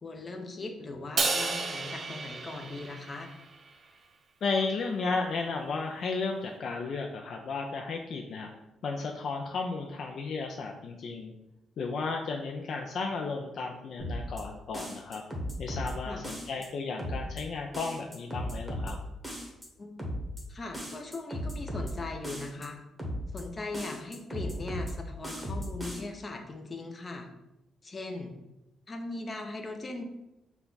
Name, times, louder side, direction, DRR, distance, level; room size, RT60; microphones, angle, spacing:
voice 1, 0.0-3.3 16.0-16.2 19.8-19.9 20.5-22.8 23.3-27.3 27.8-28.3 28.9-30.0, left 2 dB, 30° left, 4 dB, 0.7 m, -39 dB
Crash cymbal, 1.2-3.6, right 3 dB, 50° right, 0.6 m, -32 dB
voice 2, 4.4-8.5 8.8-11.3 11.8-15.2 15.6-19.0, left 4 dB, 60° left, 2 dB, 0.4 m, -34 dB
sound 1, 14.0-14.4 14.7-15.9 16.2-16.7 17.0-17.4 17.7-18.9 19.2-19.7 20.0-20.4 20.7-21.9 22.2-22.7 23.0-23.4 23.7-24.9 25.2-26.0, equal, 5° right, 1.2 m, -36 dB
5.6 x 2.3 x 3.9 m, 0.93 s
cardioid pair, 90°, 0 cm